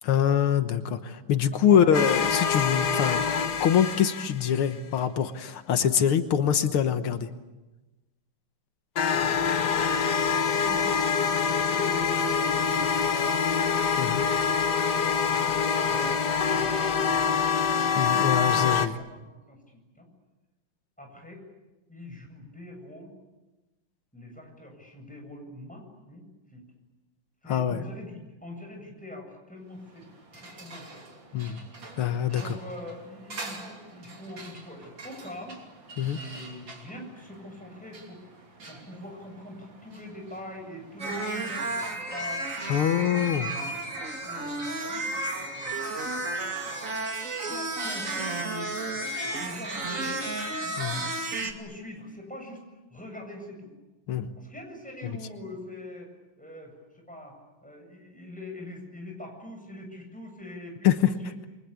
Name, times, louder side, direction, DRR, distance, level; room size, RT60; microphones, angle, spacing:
voice 1, 0.0-3.2 3.6-7.3 14.0-14.2 18.0-19.0 27.5-27.8 31.3-31.6 32.0-32.4 36.0-36.2 42.7-43.5 50.8-51.0 54.1-54.3 55.0-55.2 60.8-61.1, left 9 dB, 85° left, 9 dB, 2.1 m, -24 dB
voice 2, 1.5-1.9 9.8-13.6 15.2-17.4 19.0-20.1 21.0-21.4 21.9-23.1 24.1-26.2 26.5-26.7 27.4-30.1 30.3-31.0 32.3-35.6 36.1-38.2 38.7-42.4 44.0-45.8 47.5-52.6 52.9-53.7 54.4-56.1 56.4-61.3, left 1 dB, 5° left, 1 dB, 7.8 m, -44 dB
sound 1, 1.9-4.7 9.0-18.9, left 6 dB, 55° left, 1.7 m, -25 dB
sound 2, 29.6-47.1, right 2 dB, 60° right, 4.0 m, -47 dB
sound 3, 41.0-51.5, right 2 dB, 40° right, 2.8 m, -32 dB
29.0 x 23.5 x 8.4 m, 1.1 s
omnidirectional pair, 2.3 m